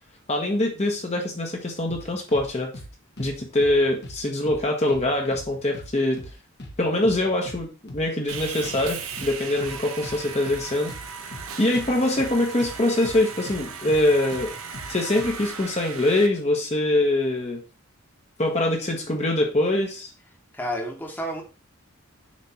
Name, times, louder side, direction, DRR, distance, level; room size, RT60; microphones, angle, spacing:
voice 1, 0.3-2.7 3.2-6.2 6.8-7.7 7.9-10.9 11.6-14.5 14.9-17.6 18.4-20.1, left 1 dB, 30° left, 1 dB, 1.2 m, -23 dB
sound 1, 1.9-2.5 2.7-2.9 3.2-4.2 4.5-4.6 4.9-5.9 6.2-6.3 6.6-7.6 7.9-8.0 8.3-9.8 10.0-12.8 13.0-13.2 13.5-15.5, left 1 dB, 55° left, 1.6 m, -40 dB
Sawing, 8.3-16.3, right 6 dB, 85° right, 1.0 m, -37 dB
voice 2, 20.5-21.4, equal, 10° left, 0 dB, 1.3 m, -30 dB
7.4 x 3.4 x 4.4 m, 0.33 s
head